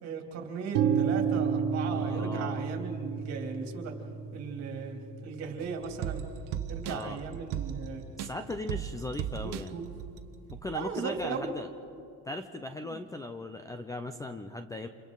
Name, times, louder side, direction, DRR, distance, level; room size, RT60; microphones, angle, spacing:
voice 1, 0.0-3.9 4.3-6.2 6.7-8.0 9.3-9.9 10.7-11.5, right 5 dB, 45° right, 2 dB, 3.1 m, -37 dB
sound 1, 0.7-8.6, right 7 dB, 80° right, 1.6 m, -33 dB
voice 2, 1.9-2.6 6.9-7.2 8.2-9.8 10.6-11.7 12.3-14.9, left 2 dB, 10° left, 8 dB, 0.5 m, -38 dB
sound 2, 5.6-10.8 11.2-11.3, right 9 dB, 60° right, 1.1 m, -38 dB
29.5 x 27.5 x 4.0 m, 2.6 s
cardioid pair, 155°, 35 cm